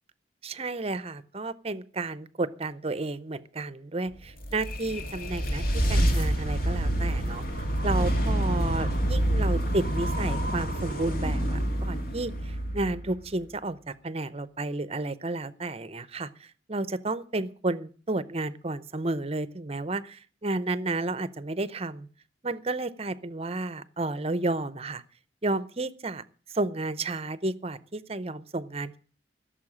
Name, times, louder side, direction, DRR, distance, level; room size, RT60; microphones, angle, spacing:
voice 1, 0.4-7.4 7.8-22.1 22.4-25.0 25.4-26.2 26.5-29.0, right 2 dB, 35° right, 15 dB, 0.7 m, -32 dB
sound 1, 4.2-13.5, right 1 dB, 50° left, 2.1 m, -27 dB
16.5 x 7.0 x 8.5 m, 0.42 s
head